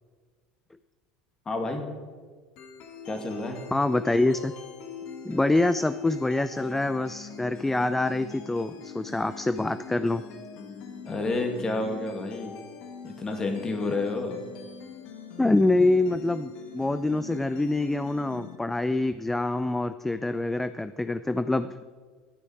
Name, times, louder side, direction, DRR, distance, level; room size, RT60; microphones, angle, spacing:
voice 1, 1.5-1.8 3.1-3.6 11.1-12.5 13.0-14.4, left 2 dB, 25° left, 5 dB, 2.1 m, -30 dB
sound 1, 2.6-18.6, left 6 dB, 55° left, 1.5 m, -43 dB
voice 2, 3.7-4.5 5.2-10.2 15.4-21.8, left 2 dB, 10° left, 13 dB, 0.4 m, -25 dB
12.0 x 9.5 x 4.9 m, 1.6 s
hypercardioid pair, 75°, 2 cm